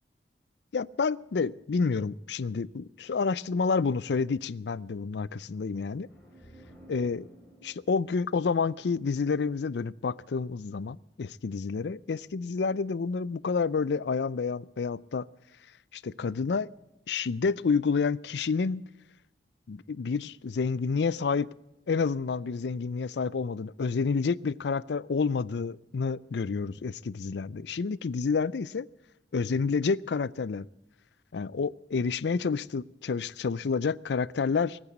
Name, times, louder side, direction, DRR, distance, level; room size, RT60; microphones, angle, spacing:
voice 1, 0.7-6.1 6.9-7.3 7.6-15.3 15.9-16.7 17.1-18.8 19.7-21.5 21.9-28.9 29.3-30.7 31.3-34.8, left 5 dB, 75° left, 0.4 m, -29 dB
sound 1, 6.0-9.7, right 1 dB, 10° left, 3.2 m, -55 dB
19.5 x 8.9 x 8.0 m
head